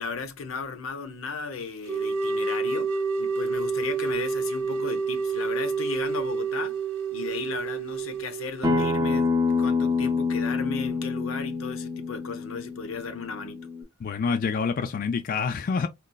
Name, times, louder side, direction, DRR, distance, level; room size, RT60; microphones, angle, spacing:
voice 1, 0.0-6.8 7.1-13.7, left 5 dB, 80° left, 0.6 m, -35 dB
sound 1, 1.9-8.6, right 4 dB, 90° right, 0.7 m, -28 dB
Acoustic guitar, 8.6-13.8, left 4 dB, 20° right, 0.6 m, -27 dB
voice 2, 14.0-15.9, left 5 dB, 45° left, 0.3 m, -27 dB
3.9 x 2.2 x 2.2 m
head